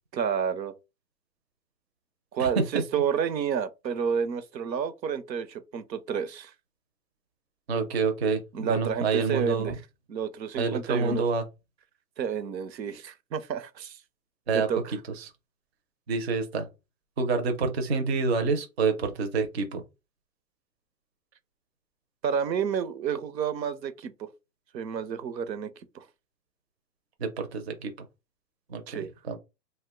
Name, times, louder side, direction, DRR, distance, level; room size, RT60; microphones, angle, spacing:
voice 1, 0.1-0.7 2.3-6.5 8.5-9.8 10.1-11.2 12.2-14.0 14.5-14.9 22.2-24.3 24.7-26.1 28.9-29.1, right 7 dB, 80° right, 0.7 m, -30 dB
voice 2, 7.7-9.7 10.6-11.4 14.5-14.7 15.2-15.3 16.1-16.7 17.2-19.8 27.2-27.9 28.7-29.4, right 4 dB, 40° right, 0.5 m, -27 dB
2.5 x 2.1 x 3.5 m
hypercardioid pair, 155°, 50 cm